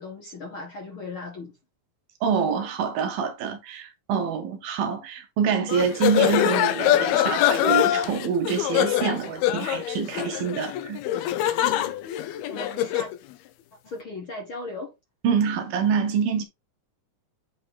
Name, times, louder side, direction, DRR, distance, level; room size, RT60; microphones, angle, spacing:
voice 1, 0.0-1.5 11.6-13.1 13.8-14.9, left 3 dB, 45° left, 1.9 m, -38 dB
voice 2, 2.2-11.0 15.2-16.5, right 7 dB, 70° right, 2.7 m, -26 dB
sound 1, 5.7-13.2, left 12 dB, 85° left, 2.7 m, -24 dB
8.7 x 3.9 x 4.0 m
omnidirectional pair, 4.5 m